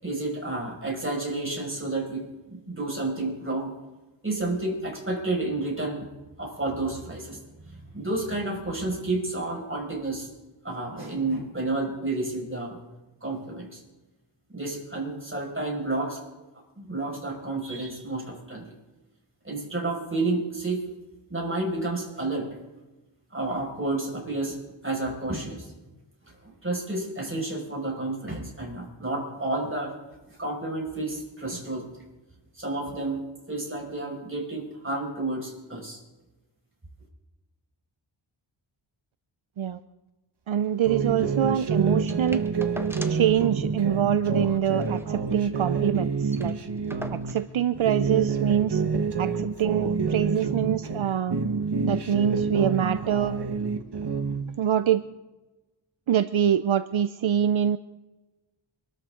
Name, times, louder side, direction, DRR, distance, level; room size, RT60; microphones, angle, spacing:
voice 1, 0.0-3.7 4.2-6.1 6.4-10.3 10.6-12.8 13.2-13.8 14.5-16.2 16.8-18.7 19.4-20.9 21.3-22.6 23.3-25.7 26.4-29.9 30.3-31.9 32.6-33.2 33.5-36.0, right 2 dB, 25° right, -1 dB, 5.7 m, -30 dB
voice 2, 40.5-42.4 43.1-46.6 47.1-48.8 49.2-51.4 51.8-53.4 54.6-55.0 56.1-57.8, right 9 dB, 75° right, 12 dB, 0.6 m, -25 dB
sound 1, 40.9-47.3 47.7-51.0 51.3-54.4, right 5 dB, 55° right, 1.4 m, -27 dB
sound 2, 42.1-43.4 43.7-43.8 44.0-44.2 44.6-45.7 46.0-46.1 46.3-47.5 48.4-48.5, equal, 5° right, 1.1 m, -42 dB
26.0 x 13.0 x 3.8 m, 1.1 s
wide cardioid pair, 80°, 49 cm